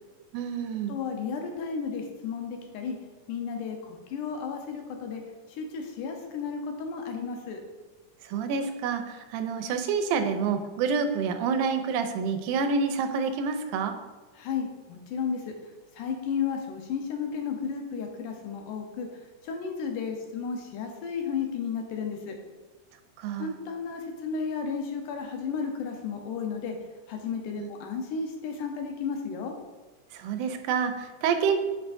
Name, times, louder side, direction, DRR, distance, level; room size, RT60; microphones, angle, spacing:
voice 1, 0.3-0.9 8.3-13.9 23.2-23.5 27.6-27.7 30.1-31.6, right 5 dB, 80° right, 7 dB, 2.1 m, -28 dB
voice 2, 0.9-3.0 3.3-5.2 5.6-7.6 14.4-15.5 15.9-19.1 19.4-22.4 23.4-26.8 27.1-29.5, left 6 dB, 85° left, 3 dB, 2.4 m, -33 dB
8.8 x 5.8 x 2.6 m, 1.3 s
omnidirectional pair, 3.6 m